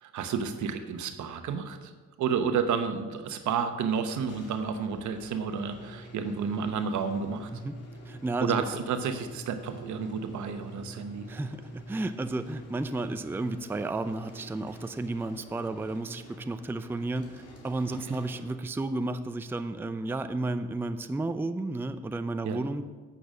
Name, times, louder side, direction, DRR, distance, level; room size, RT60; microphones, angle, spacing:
voice 1, 0.0-1.9 2.2-7.5 8.4-11.3 18.1-18.2 22.4-22.7, right 6 dB, 75° right, 8 dB, 1.0 m, -31 dB
sound 1, 4.1-19.0, equal, 55° left, 2.6 m, -47 dB
voice 2, 8.1-8.7 11.3-22.8, right 2 dB, 5° right, 10 dB, 0.4 m, -32 dB
8.5 x 6.9 x 6.3 m, 1.4 s
cardioid pair, 90°, 30 cm